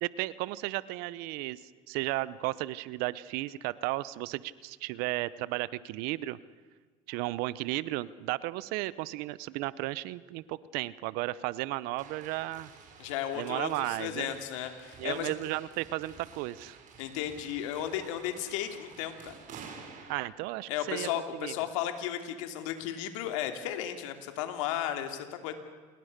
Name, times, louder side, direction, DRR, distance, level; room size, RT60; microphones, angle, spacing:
voice 1, 0.0-1.6 1.9-6.4 7.1-12.7 13.3-14.4 15.0-16.8 20.1-21.1 21.4-21.5, right 18 dB, 75° right, 18 dB, 0.9 m, -34 dB
sound 1, 12.0-20.2, right 5 dB, 50° right, 5.7 m, -51 dB
voice 2, 13.0-15.3 17.0-19.4 20.7-25.5, left 11 dB, 85° left, 7 dB, 2.8 m, -34 dB
28.5 x 21.5 x 6.7 m, 1.5 s
supercardioid pair, 90°, 16 cm